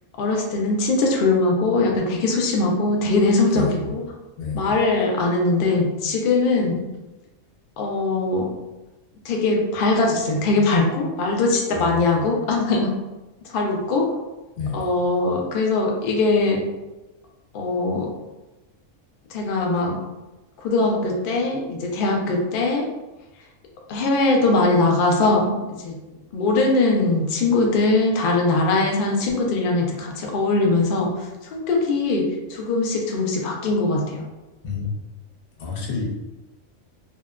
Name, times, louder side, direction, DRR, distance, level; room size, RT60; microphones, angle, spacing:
voice 1, 0.2-4.0 4.5-6.9 7.8-8.5 9.2-12.9 13.5-14.1 14.7-16.6 17.5-18.1 19.3-20.0 20.6-22.9 23.9-25.6 25.8-26.0 26.3-32.2 32.5-34.2, left 3 dB, 70° left, 0 dB, 0.5 m, -21 dB
voice 2, 3.5-3.9 4.4-4.8 11.7-12.1 14.6-14.9 34.6-34.9 35.6-36.0, left 5 dB, 85° left, -1 dB, 1.1 m, -29 dB
2.7 x 2.1 x 2.3 m, 1.1 s
omnidirectional pair, 1.4 m